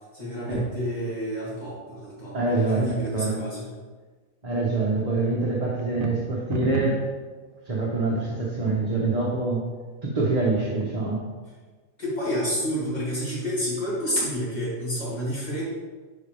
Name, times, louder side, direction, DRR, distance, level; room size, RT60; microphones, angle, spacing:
voice 1, 0.1-3.7 12.0-15.6, equal, 30° left, -8 dB, 2.6 m, -29 dB
voice 2, 2.3-2.8 3.1-3.4 4.4-7.0 7.7-9.7 10.0-11.2, right 3 dB, 30° right, -5 dB, 1.0 m, -25 dB
sound 1, 5.8-7.1, right 6 dB, 80° right, 1.1 m, -30 dB
10.5 x 4.2 x 3.4 m, 1.4 s
omnidirectional pair, 1.4 m